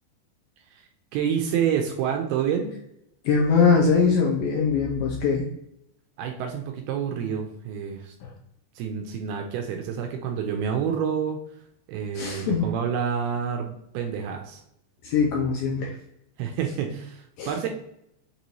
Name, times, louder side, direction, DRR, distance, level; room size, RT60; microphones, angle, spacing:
voice 1, 0.7-2.7 6.2-8.2 8.8-11.4 11.9-14.6 16.4-17.7, right 7 dB, 80° right, 3 dB, 2.3 m, -28 dB
voice 2, 3.3-5.4 8.2-8.3 12.2-12.7 15.0-15.9 17.4-17.5, left 5 dB, 80° left, -1 dB, 2.1 m, -22 dB
6.7 x 2.7 x 3.0 m, 0.77 s
omnidirectional pair, 4.9 m